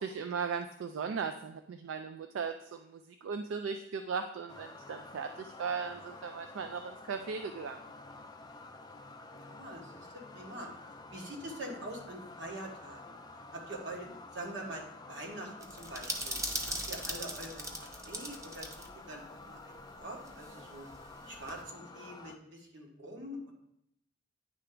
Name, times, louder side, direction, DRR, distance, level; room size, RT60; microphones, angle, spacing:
voice 1, 0.0-7.8, right 5 dB, 85° right, 7 dB, 0.4 m, -37 dB
sound 1, 4.5-22.4, left 2 dB, 20° left, 0.4 m, -50 dB
voice 2, 9.3-10.1 10.3-10.7 11.1-13.2 13.5-16.4 16.6-20.9 21.2-23.5, right 1 dB, 65° right, 0 dB, 1.4 m, -44 dB
sound 2, 15.6-18.9 19.1-19.2 20.2-21.6, right 1 dB, 15° right, 0.7 m, -39 dB
9.7 x 3.3 x 3.7 m, 0.77 s
head